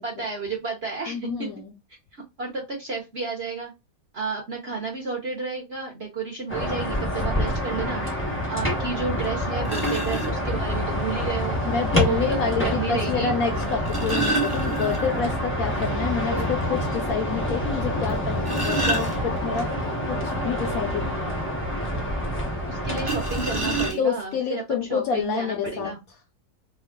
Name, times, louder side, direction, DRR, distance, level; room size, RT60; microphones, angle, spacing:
voice 1, 0.0-1.5 2.4-3.7 4.1-11.6 12.0-13.3 22.7-26.0, right 4 dB, 55° right, 0.7 m, -31 dB
voice 2, 1.1-1.7 11.7-19.7 20.1-21.6 24.0-25.9, left 6 dB, 70° left, 0.8 m, -28 dB
sound 1, 6.5-23.9, equal, 20° left, 0.3 m, -27 dB
sound 2, 9.6-10.3 11.7-11.8 13.6-15.3 15.7-15.8 16.2-16.3 16.8-16.9 18.1-19.6 23.0-24.3 25.2-25.3 25.7-25.9, right 2 dB, 25° right, 0.7 m, -28 dB
2.9 x 2.3 x 3.5 m
omnidirectional pair, 1.9 m